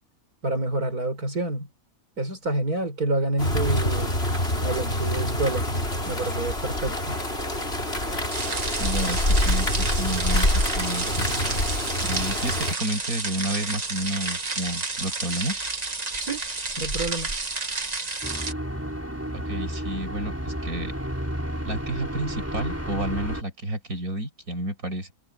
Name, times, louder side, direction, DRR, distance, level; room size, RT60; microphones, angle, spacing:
voice 1, 0.4-1.7 2.2-4.1 4.6-5.7 6.1-7.2 16.2-16.4 16.8-17.3, right 2 dB, 90° right, 5.0 m, -28 dB
sound 1, 3.4-12.7, left 1 dB, 45° left, 6.5 m, -26 dB
sound 2, 8.3-18.5, right 3 dB, 30° right, 1.5 m, -30 dB
voice 2, 8.8-11.3 12.0-15.6 19.3-20.9 21.7-25.1, right 1 dB, 70° right, 6.3 m, -31 dB
sound 3, 18.2-23.4, equal, 10° right, 4.1 m, -32 dB
omnidirectional pair, 1.5 m